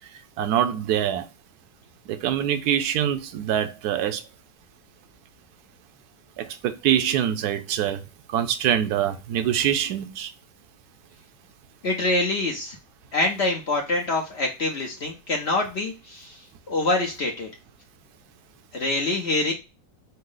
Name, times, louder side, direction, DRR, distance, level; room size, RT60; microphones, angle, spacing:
voice 1, 0.4-1.3 2.1-4.2 6.4-8.0 8.3-10.3, right 10 dB, 70° right, 1.0 m, -24 dB
voice 2, 11.8-12.8 13.1-17.5 18.7-19.5, left 2 dB, 60° left, 0.7 m, -25 dB
5.4 x 2.0 x 3.7 m
omnidirectional pair, 1.9 m